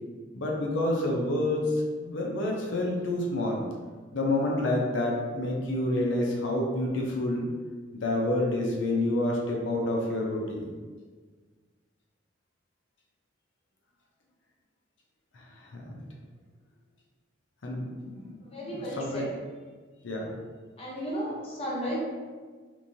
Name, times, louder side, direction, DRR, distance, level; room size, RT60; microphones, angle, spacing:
voice 1, 0.3-3.6 4.1-7.5 7.9-10.7 15.3-16.0 17.6-19.2 20.0-20.3, left 1 dB, 85° left, -1 dB, 0.6 m, -29 dB
voice 2, 18.4-19.3 20.8-22.0, equal, 30° left, -4 dB, 0.7 m, -34 dB
3.0 x 2.6 x 2.6 m, 1.5 s
head